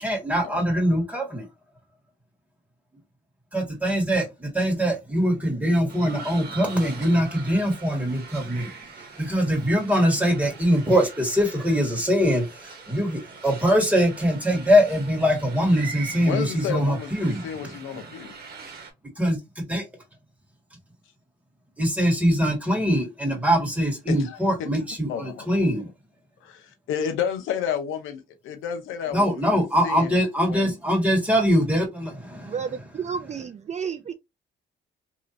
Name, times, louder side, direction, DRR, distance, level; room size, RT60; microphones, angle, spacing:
voice 1, 0.0-1.5 3.5-8.7 9.2-17.5 19.2-19.8 21.8-25.9 29.1-32.6, equal, 5° right, 1.8 m, -23 dB
sound 1, 5.9-18.9, right 4 dB, 50° right, 1.2 m, -42 dB
voice 2, 16.2-18.3 24.1-24.7 25.1-25.5 26.4-30.7, left 8 dB, 90° left, 0.7 m, -31 dB
voice 3, 32.4-34.1, right 6 dB, 35° right, 0.4 m, -31 dB
3.0 x 2.9 x 2.6 m
cardioid pair, 90°, 20 cm